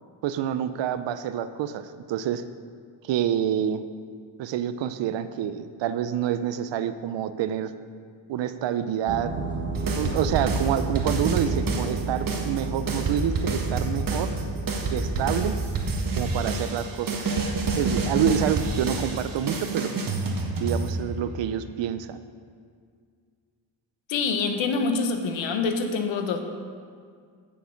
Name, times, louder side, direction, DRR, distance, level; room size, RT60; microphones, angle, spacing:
voice 1, 0.2-2.4 3.0-3.8 4.4-7.7 8.3-9.5 9.9-14.3 14.9-15.5 16.2-17.3 17.8-19.9 20.6-22.2, right 10 dB, 70° right, 12 dB, 0.7 m, -27 dB
sound 1, 9.1-15.9, right 3 dB, 25° right, 1.1 m, -31 dB
sound 2, 9.7-12.0 12.3-21.3, right 3 dB, 45° right, 1.5 m, -28 dB
voice 2, 24.1-26.4, left 4 dB, 80° left, 6 dB, 1.1 m, -26 dB
9.4 x 6.9 x 5.2 m, 2.1 s
cardioid pair, 85°, 45 cm